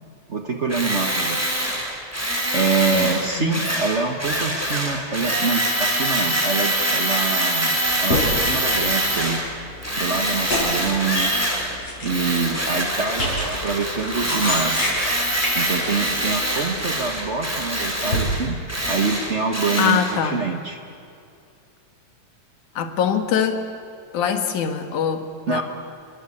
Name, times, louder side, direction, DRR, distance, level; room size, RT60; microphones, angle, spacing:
voice 1, 0.3-1.4 2.5-7.7 8.0-9.4 10.0-11.3 12.0-14.7 15.5-18.6 18.8-20.8 25.5-25.6, right 4 dB, 85° right, 4 dB, 0.6 m, -25 dB
Tools, 0.7-9.5 9.8-11.8 12.0-20.2, right 1 dB, 5° right, 3.3 m, -24 dB
voice 2, 2.9-3.6 19.8-20.4 22.8-23.6 24.1-25.6, left 8 dB, 75° left, 7 dB, 3.1 m, -23 dB
sound 1, 7.9-18.2, left 1 dB, 50° left, 8.9 m, -29 dB
27.5 x 21.5 x 8.6 m, 2.5 s
omnidirectional pair, 3.5 m